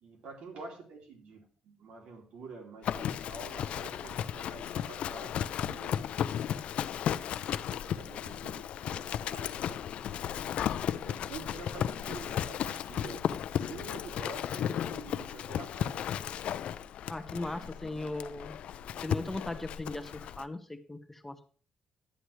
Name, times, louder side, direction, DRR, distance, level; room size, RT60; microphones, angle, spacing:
voice 1, 0.0-6.0 7.2-9.9 10.8-16.1 17.5-18.1, right 3 dB, 80° right, 1 dB, 2.6 m, -48 dB
Livestock farm animals working animals, 2.8-20.4, left 10 dB, 70° left, 0.4 m, -35 dB
voice 2, 17.1-18.5 19.0-21.5, left 2 dB, 10° left, 9 dB, 0.8 m, -38 dB
11.5 x 9.8 x 3.1 m, 0.42 s
cardioid pair, 120°, 2 cm